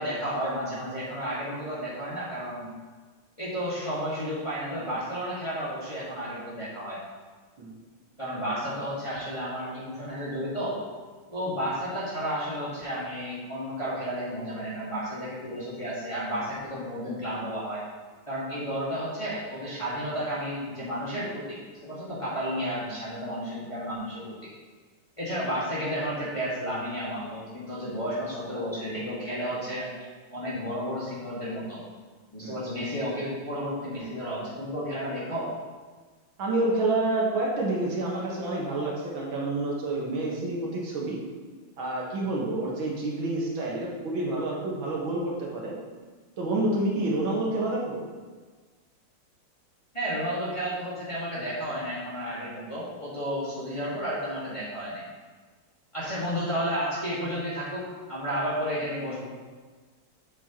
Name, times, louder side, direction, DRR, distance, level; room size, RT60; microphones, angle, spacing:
voice 1, 0.0-2.7 3.4-7.0 8.2-10.7 11.3-17.8 18.3-24.5 25.2-29.9 30.3-31.8 32.3-35.5 49.9-55.0 55.9-59.2, equal, 15° left, -9 dB, 1.6 m, -32 dB
voice 2, 36.4-41.2 41.8-45.8 46.4-48.0, right 2 dB, 65° right, -4 dB, 2.1 m, -28 dB
7.7 x 7.4 x 3.0 m, 1.4 s
omnidirectional pair, 2.3 m